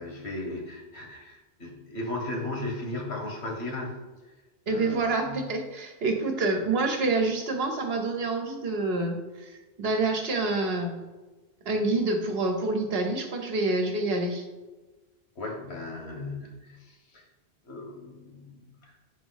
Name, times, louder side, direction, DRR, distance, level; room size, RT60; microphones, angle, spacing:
voice 1, 0.0-3.9 4.2-4.3 4.7-5.5 15.3-17.3 17.6-19.0, left 2 dB, 80° left, 1 dB, 1.6 m, -36 dB
voice 2, 4.7-11.0 11.6-14.4, right 3 dB, 70° right, 4 dB, 1.2 m, -27 dB
8.3 x 3.0 x 5.6 m, 1.2 s
omnidirectional pair, 1.1 m